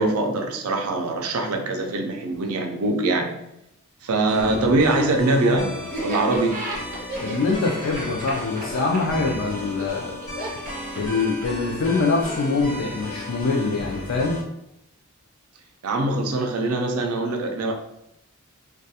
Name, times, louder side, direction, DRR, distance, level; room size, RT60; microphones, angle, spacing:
voice 1, 0.0-3.3 4.0-6.6 15.8-17.7, right 2 dB, 85° right, 3 dB, 0.4 m, -23 dB
sound 1, 4.3-14.4, left 1 dB, 85° left, 1.0 m, -35 dB
Laughter, 5.9-11.7, right 2 dB, 35° right, 0.6 m, -34 dB
voice 2, 7.2-10.2 11.0-14.4, left 3 dB, 65° left, -1 dB, 0.4 m, -24 dB
2.3 x 2.2 x 2.7 m, 0.83 s
head